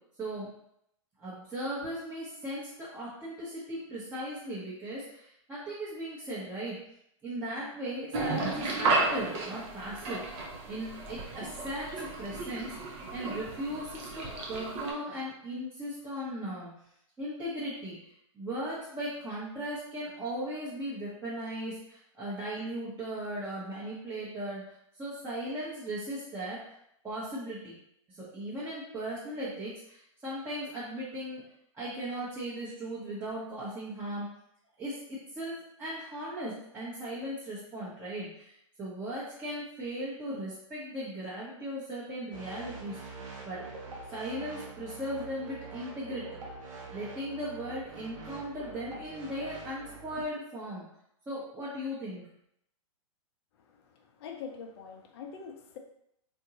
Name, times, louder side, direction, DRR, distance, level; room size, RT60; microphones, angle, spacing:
voice 1, 1.2-6.8 7.2-10.2 10.7-16.7 17.2-17.9 18.3-24.6 25.0-26.7 27.0-27.7 28.1-31.4 31.7-34.3 34.8-43.0 43.4-43.7 44.1-46.4 46.9-50.8 51.3-52.3, right 1 dB, 15° right, -10 dB, 0.9 m, -37 dB
sound 1, 8.1-14.9, right 3 dB, 35° right, 0.7 m, -33 dB
sound 2, 42.3-50.3, right 3 dB, 75° right, 1.1 m, -45 dB
voice 2, 53.6-55.8, left 6 dB, 50° left, 2 dB, 0.6 m, -44 dB
3.6 x 2.7 x 2.8 m, 0.76 s
hypercardioid pair, 135°, 17 cm